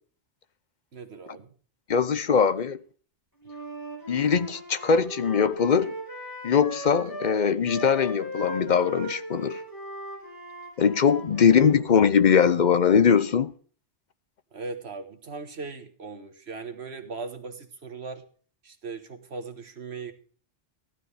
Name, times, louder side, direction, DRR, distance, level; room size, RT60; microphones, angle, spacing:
voice 1, 0.9-1.5 11.4-11.5 14.5-18.2 18.6-20.1, right 4 dB, 60° right, 1.7 m, -38 dB
voice 2, 1.9-2.8 4.1-5.9 6.4-9.6 10.8-13.5, left 6 dB, 45° left, 0.7 m, -21 dB
Wind instrument woodwind instrument, 3.4-11.8, right 1 dB, 15° left, 5.7 m, -38 dB
15.0 x 12.0 x 3.4 m
omnidirectional pair, 1.2 m